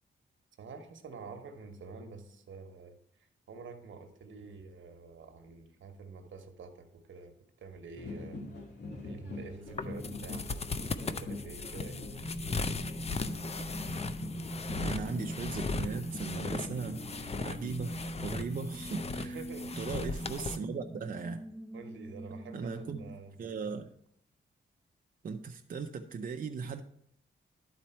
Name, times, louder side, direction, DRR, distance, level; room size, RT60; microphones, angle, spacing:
voice 1, 0.6-3.0 3.5-8.4 9.0-10.6 10.9-12.1 19.2-19.7 21.7-23.3 23.6-23.7, right 4 dB, 80° right, 6 dB, 1.1 m, -48 dB
sound 1, 8.0-17.7, left 2 dB, 55° left, 2.1 m, -44 dB
sound 2, 9.3-23.2, right 1 dB, 5° left, 0.9 m, -43 dB
sound 3, 9.7-20.6, left 4 dB, 30° left, 0.5 m, -38 dB
voice 2, 14.7-17.0 17.4-19.4 19.8-21.4 22.5-23.0 23.4-23.9 25.2-26.8, right 5 dB, 45° right, 4 dB, 0.6 m, -38 dB
11.5 x 4.2 x 4.4 m, 0.69 s
wide cardioid pair, 105°, 20 cm